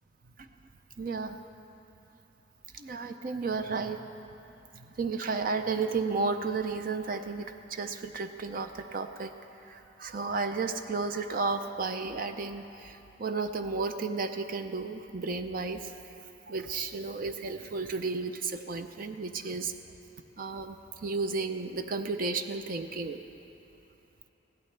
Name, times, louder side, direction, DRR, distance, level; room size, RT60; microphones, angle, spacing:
voice 1, 1.0-1.4 2.7-4.0 4.8-9.3 9.6-15.9 16.5-19.7 20.4-23.2, right 4 dB, 50° right, 7 dB, 0.6 m, -33 dB
20.5 x 15.5 x 3.3 m, 3.0 s
head